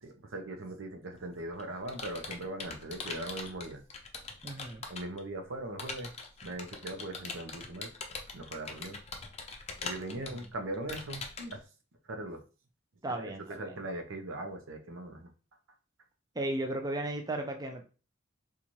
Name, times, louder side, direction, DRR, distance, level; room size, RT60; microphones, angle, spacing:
voice 1, 0.0-3.8 4.9-6.1 6.4-7.9 8.3-9.0 9.8-11.6 12.1-12.4 13.1-15.3, right 2 dB, 85° right, 5 dB, 0.7 m, -40 dB
Computer keyboard, 1.1-5.2 5.8-11.6, left 4 dB, 30° left, 0.5 m, -42 dB
voice 2, 4.4-4.8 10.2-10.3 13.0-13.7 16.4-17.8, right 1 dB, 20° right, 3 dB, 0.4 m, -35 dB
4.0 x 2.4 x 3.0 m, 0.34 s
head